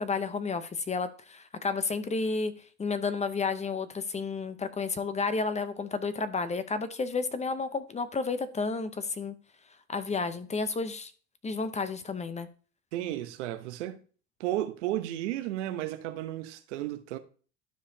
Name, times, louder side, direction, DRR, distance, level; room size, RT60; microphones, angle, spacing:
voice 1, 0.0-2.5 2.8-9.3 9.9-11.1 11.4-12.5, left 4 dB, 20° left, 0.8 m, -31 dB
voice 2, 12.9-14.0 14.4-17.2, right 13 dB, 80° right, 0.9 m, -33 dB
12.5 x 4.9 x 2.8 m
supercardioid pair, 95°, 35 cm